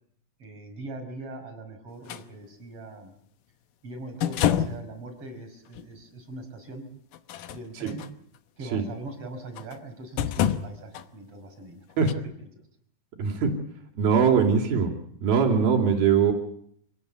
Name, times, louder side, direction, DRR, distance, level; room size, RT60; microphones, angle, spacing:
voice 1, 0.4-3.1 3.8-6.9 7.5-8.0 8.6-11.9 12.5-12.6, right 2 dB, 40° right, 5 dB, 5.8 m, -41 dB
sound 1, 2.1-2.2 4.2-4.9 5.8-5.9 7.1-8.1 9.6-9.8 10.2-11.1 12.1-12.2, left 10 dB, 70° left, 2.5 m, -27 dB
voice 2, 13.2-13.5 14.0-14.9 15.2-16.3, right 6 dB, 80° right, 3 dB, 4.8 m, -21 dB
28.0 x 17.0 x 8.5 m, 0.69 s
omnidirectional pair, 4.2 m